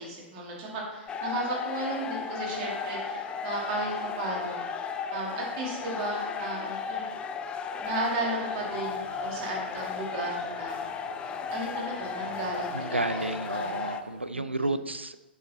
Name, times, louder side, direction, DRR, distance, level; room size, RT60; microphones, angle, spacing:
voice 1, 0.0-4.6 5.1-7.1 7.8-10.7 11.5-13.6 14.3-14.7, right 2 dB, 40° right, -2 dB, 2.5 m, -34 dB
sound 1, 1.1-14.0, left 6 dB, 15° left, 0.4 m, -35 dB
sound 2, 8.5-14.3, left 1 dB, 65° left, 2.4 m, -53 dB
voice 2, 12.7-15.2, right 2 dB, 85° right, 12 dB, 0.5 m, -31 dB
8.0 x 6.1 x 4.2 m, 1.1 s
figure-of-eight pair, 110°, 6 cm